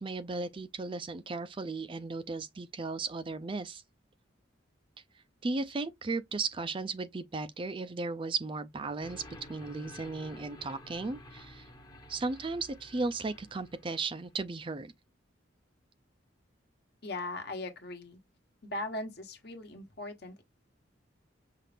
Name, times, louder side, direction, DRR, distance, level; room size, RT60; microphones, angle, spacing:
voice 1, 0.0-3.8 5.4-9.2 9.5-11.7 12.1-14.9, right 3 dB, 25° right, 0.4 m, -35 dB
sound 1, 9.0-14.4, left 1 dB, 20° left, 0.8 m, -51 dB
voice 2, 17.0-18.2 18.6-20.4, left 2 dB, 55° left, 1.2 m, -39 dB
5.7 x 2.4 x 3.4 m
head